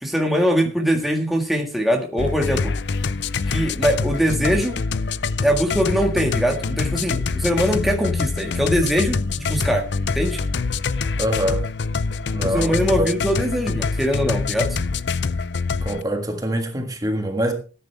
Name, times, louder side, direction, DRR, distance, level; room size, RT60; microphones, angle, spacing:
voice 1, 0.0-2.8 3.5-4.8 5.4-9.9 10.1-10.4 12.4-14.8, equal, ahead, 1.7 m, -22 dB
sound 1, 2.2-16.0, left 4 dB, 65° left, 0.5 m, -25 dB
voice 2, 11.2-11.7 12.3-13.1 15.8-17.5, equal, 20° right, 1.6 m, -24 dB
17.0 x 10.0 x 3.5 m
head